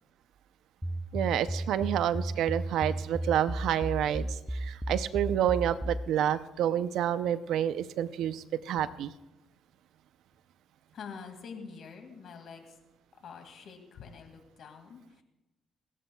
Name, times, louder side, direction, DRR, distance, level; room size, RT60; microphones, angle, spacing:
sound 1, 0.8-6.1, right 1 dB, ahead, 0.3 m, -34 dB
voice 1, 1.1-9.1, right 10 dB, 80° right, 13 dB, 0.5 m, -29 dB
voice 2, 10.9-12.8 13.1-15.2, left 6 dB, 65° left, 5 dB, 2.2 m, -46 dB
30.0 x 11.0 x 2.3 m, 1.1 s
cardioid pair, 90°, 0 cm